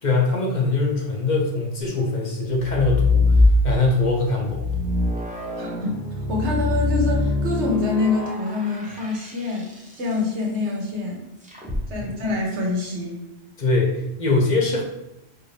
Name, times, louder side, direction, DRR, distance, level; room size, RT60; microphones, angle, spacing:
voice 1, 0.0-4.6 12.0-12.1 13.6-14.8, left 3 dB, 50° left, -1 dB, 0.7 m, -22 dB
sound 1, 2.5-4.0 4.4-9.9 11.5-11.8, left 2 dB, 10° right, 0.7 m, -22 dB
voice 2, 5.6-6.0 6.3-9.7 9.9-11.2 11.9-13.2, left 3 dB, 85° right, -1 dB, 1.3 m, -25 dB
4.2 x 2.7 x 3.2 m, 0.91 s
omnidirectional pair, 1.1 m